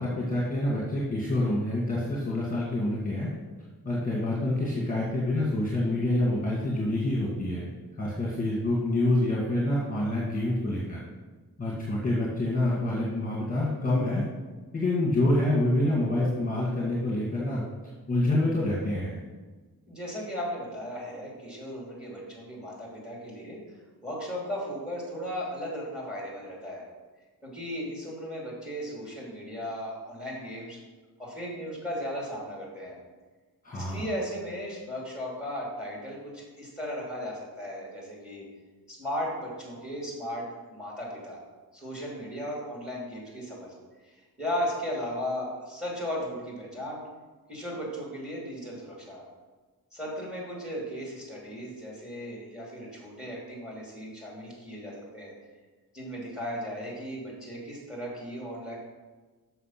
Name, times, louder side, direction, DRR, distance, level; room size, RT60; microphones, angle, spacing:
voice 1, 0.0-3.3 3.8-7.6 8.0-11.0 11.6-14.2 14.7-17.6 18.1-19.1 33.6-34.1, left 1 dB, 20° left, -4 dB, 1.7 m, -27 dB
voice 2, 19.9-23.6 24.0-26.8 27.4-30.8 31.2-33.0 33.7-38.4 38.9-40.4 40.7-41.4 41.7-43.7 44.0-47.0 47.5-49.3 49.9-55.3 55.9-58.8, equal, ahead, -3 dB, 3.0 m, -36 dB
6.7 x 6.2 x 5.8 m, 1.3 s
wide cardioid pair, 130°, 37 cm